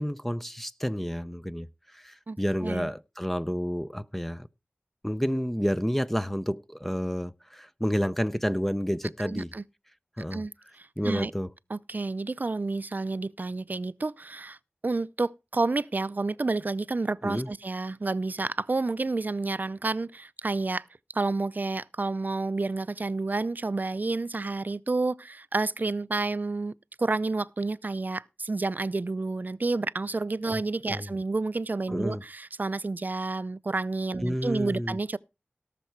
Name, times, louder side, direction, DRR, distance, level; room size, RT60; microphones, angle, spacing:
voice 1, 0.0-1.7 1.9-4.5 5.0-9.5 10.2-10.4 11.0-11.5 17.2-17.5 30.5-30.6 30.9-31.1 31.9-32.2 34.2-35.0, equal, 5° left, 0.6 m, -30 dB
voice 2, 9.2-9.6 10.3-11.3 11.7-14.6 14.8-20.9 21.1-35.2, right 3 dB, 50° right, 0.5 m, -30 dB
17.5 x 6.8 x 4.6 m
wide cardioid pair, 60°, 4 cm